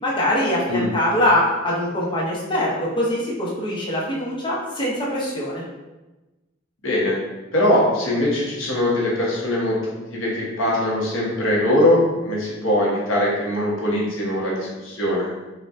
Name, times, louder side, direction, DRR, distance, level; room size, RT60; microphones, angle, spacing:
voice 1, 0.0-5.6, left 1 dB, 25° left, -5 dB, 0.7 m, -23 dB
voice 2, 6.8-7.2 7.5-9.8 10.1-15.3, left 1 dB, 85° left, -4 dB, 1.0 m, -21 dB
4.2 x 2.2 x 2.5 m, 1.1 s
head